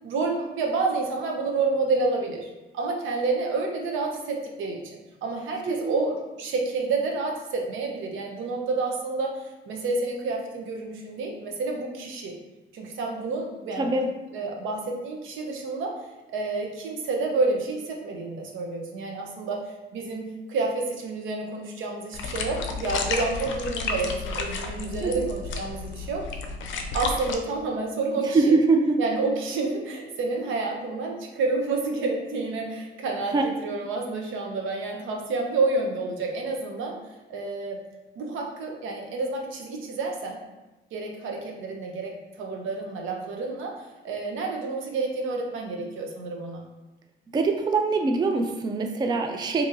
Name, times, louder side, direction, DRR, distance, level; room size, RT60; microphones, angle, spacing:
voice 1, 0.0-2.5 2.7-9.3 9.7-12.3 12.7-14.0 14.3-15.9 16.3-19.6 19.9-26.2 26.9-28.5 29.0-37.0 37.3-37.8 38.2-40.4 40.9-42.1 42.4-43.7 44.0-46.6, right 3 dB, 80° right, 1 dB, 0.7 m, -29 dB
voice 2, 13.8-14.1 25.0-25.3 28.3-29.0 33.3-33.4 47.3-49.7, right 3 dB, 20° right, 4 dB, 0.3 m, -23 dB
sound 1, 22.1-27.3, left 4 dB, 75° left, 0.5 m, -32 dB
2.8 x 2.5 x 3.9 m, 1.1 s
cardioid pair, 90°, 20 cm